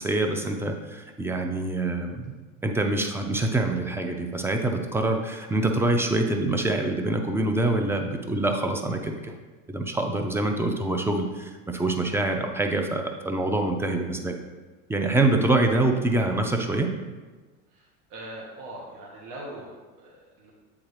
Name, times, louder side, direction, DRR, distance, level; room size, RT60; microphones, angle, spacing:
voice 1, 0.0-2.4 2.6-9.3 9.7-14.4 14.9-16.9, right 2 dB, 5° right, 4 dB, 0.5 m, -25 dB
voice 2, 17.7-20.5, right 1 dB, 50° right, -4 dB, 1.4 m, -41 dB
7.9 x 3.6 x 3.3 m, 1.3 s
hypercardioid pair, 90°, 40 cm